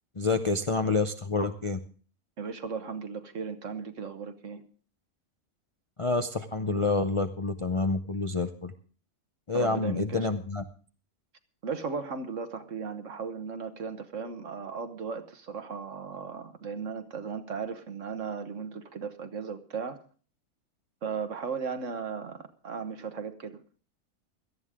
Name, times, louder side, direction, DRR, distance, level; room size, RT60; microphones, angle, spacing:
voice 1, 0.2-1.8 6.0-8.7 9.5-10.6, left 3 dB, 35° left, 6 dB, 0.5 m, -28 dB
voice 2, 2.4-4.6 9.5-10.3 11.6-20.0 21.0-23.6, right 5 dB, 60° right, 9 dB, 1.5 m, -36 dB
17.5 x 13.0 x 3.6 m, 0.40 s
omnidirectional pair, 1.5 m